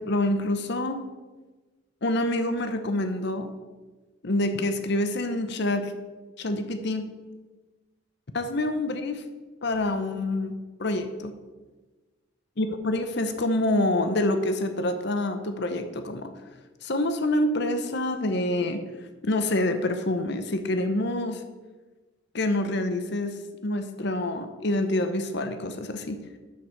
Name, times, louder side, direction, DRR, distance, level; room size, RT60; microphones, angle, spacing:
voice 1, 0.1-1.1 2.0-3.5 4.2-5.9 6.4-7.1 8.3-9.2 9.6-11.3 12.6-16.3 16.8-18.8 19.2-21.4 22.3-26.2, left 1 dB, 55° left, 8 dB, 0.8 m, -27 dB
11.0 x 6.3 x 4.6 m, 1.2 s
head